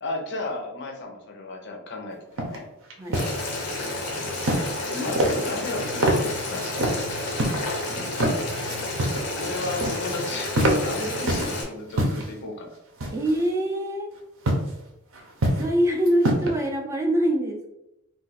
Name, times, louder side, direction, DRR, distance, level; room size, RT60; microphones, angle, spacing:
voice 1, 0.0-2.6 4.9-6.7 7.1-7.5 9.3-12.8, left 2 dB, 55° left, 1 dB, 0.6 m, -33 dB
sound 1, 2.4-2.6 2.9-3.3 4.4-4.8 5.1-5.7 6.0-6.2 6.6-7.0 7.4-7.6 8.1-8.3 8.7-9.3 9.5-10.1 10.4-11.5 11.9-12.3 13.0-13.4 14.4-14.7 15.1-15.7 16.0-16.5, right 1 dB, 60° right, 0.6 m, -25 dB
Boiling, 3.1-11.6, left 2 dB, 90° left, 0.9 m, -30 dB
voice 2, 13.1-14.1 15.6-17.7, right 1 dB, 15° right, 0 dB, 0.4 m, -24 dB
2.4 x 2.4 x 4.0 m, 0.85 s
head